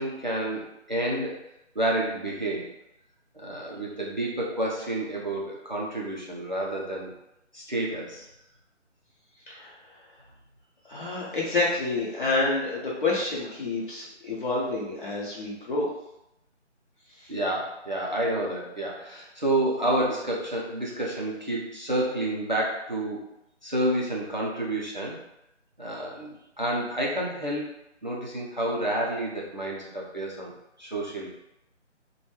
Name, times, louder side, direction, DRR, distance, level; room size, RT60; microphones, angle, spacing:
voice 1, 0.0-1.4 1.8-2.7 3.3-7.1 7.5-8.3 17.3-23.2 23.6-25.2 25.8-27.7 28.0-30.5 30.8-31.3, right 1 dB, 40° right, -3 dB, 0.4 m, -29 dB
voice 2, 10.9-15.9 17.2-17.3, left 3 dB, 45° left, -5 dB, 1.0 m, -28 dB
2.9 x 2.2 x 3.2 m, 0.84 s
figure-of-eight pair, 155°, 36 cm